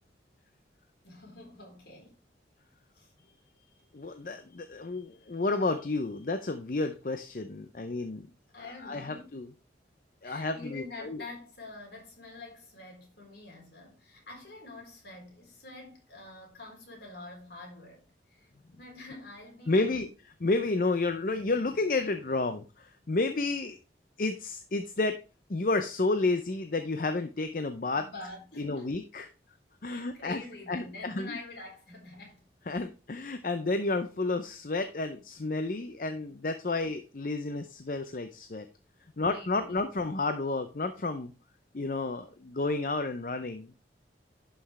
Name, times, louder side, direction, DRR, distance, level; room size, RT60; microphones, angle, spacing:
voice 1, 1.0-2.2 2.9-3.1 8.5-9.4 10.2-20.1 27.9-29.0 29.8-32.5 39.1-39.9, left 2 dB, 65° left, 4.1 m, -46 dB
voice 2, 3.9-8.3 8.8-9.5 10.2-11.2 19.7-20.1 20.4-23.8 24.2-25.2 25.5-28.1 28.6-29.3 29.8-30.4 30.7-31.4 32.7-38.7 39.2-41.3 41.7-43.8, left 3 dB, 50° left, 0.6 m, -31 dB
11.0 x 5.8 x 3.2 m
head